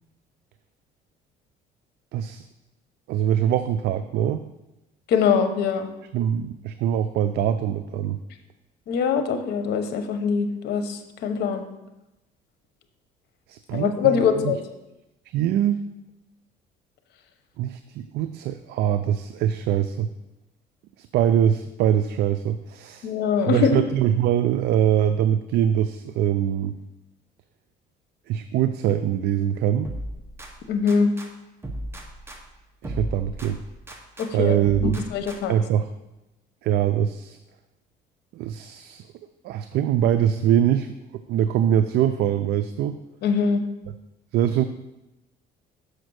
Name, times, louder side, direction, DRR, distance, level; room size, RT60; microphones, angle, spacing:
voice 1, 2.1-2.4 3.1-4.4 6.1-8.2 13.5-14.5 15.3-15.8 17.6-20.1 21.0-23.1 23.4-26.7 28.3-29.9 32.8-33.6 34.3-35.0 35.5-35.9 36.6-37.4 38.3-39.0 39.4-43.0 44.3-44.6, right 10 dB, 75° right, 9 dB, 0.4 m, -23 dB
voice 2, 5.1-5.9 8.9-11.6 13.7-14.6 23.0-23.8 30.7-31.1 34.2-35.5 43.2-43.6, left 6 dB, 75° left, 7 dB, 1.0 m, -23 dB
sound 1, 29.8-31.3 31.6-34.3 34.6-35.7, right 1 dB, 15° right, 1.1 m, -36 dB
6.4 x 5.0 x 6.3 m, 0.95 s
cardioid pair, 110°, 17 cm